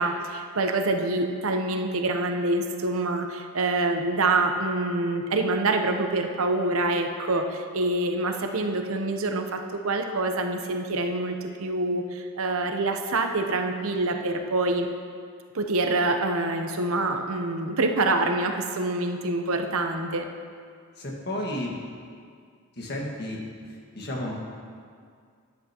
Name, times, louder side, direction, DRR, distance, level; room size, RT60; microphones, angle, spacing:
voice 1, 0.0-14.9 15.5-20.3, right 2 dB, 65° right, 5 dB, 0.8 m, -26 dB
voice 2, 21.0-21.7 22.8-23.4 23.9-24.4, left 1 dB, 50° left, -2 dB, 1.7 m, -32 dB
13.5 x 10.0 x 2.9 m, 2.1 s
head